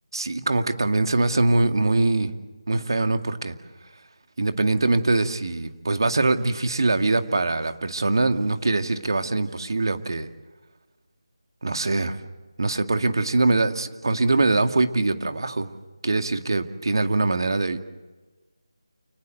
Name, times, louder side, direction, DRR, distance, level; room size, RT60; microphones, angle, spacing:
voice 1, 0.1-2.3 2.7-3.5 4.4-10.3 11.6-12.2 12.6-15.7 16.0-17.8, right 2 dB, 60° right, 7 dB, 2.2 m, -23 dB
29.0 x 19.0 x 8.0 m, 1.2 s
figure-of-eight pair, 165°, 3 cm